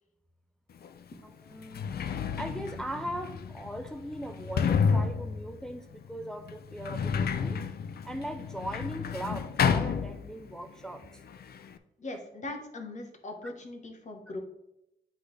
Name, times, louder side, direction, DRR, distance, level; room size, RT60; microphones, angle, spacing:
Sliding door, 0.8-0.9 1.5-10.7 10.9-11.8, left 6 dB, 55° left, 0.5 m, -31 dB
voice 1, 1.2-1.9 2.2-7.6 8.0-11.1, right 1 dB, 5° left, 0.4 m, -39 dB
voice 2, 12.0-14.4, left 2 dB, 40° left, 1.2 m, -40 dB
9.8 x 3.9 x 3.3 m
wide cardioid pair, 135°, 19 cm